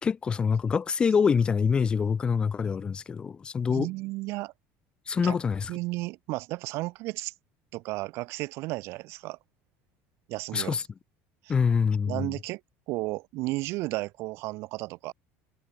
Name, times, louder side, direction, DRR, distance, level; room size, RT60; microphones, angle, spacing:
voice 1, 0.0-3.9 5.1-5.7 10.5-10.8 11.5-12.3, left 6 dB, 15° left, 1.1 m, -25 dB
voice 2, 3.7-4.5 5.2-5.4 5.7-7.3 7.7-9.4 10.3-10.7 11.4-11.5 12.1-12.6 12.9-15.1, right 21 dB, 50° right, 2.6 m, -33 dB
cardioid pair, 180°, 6 cm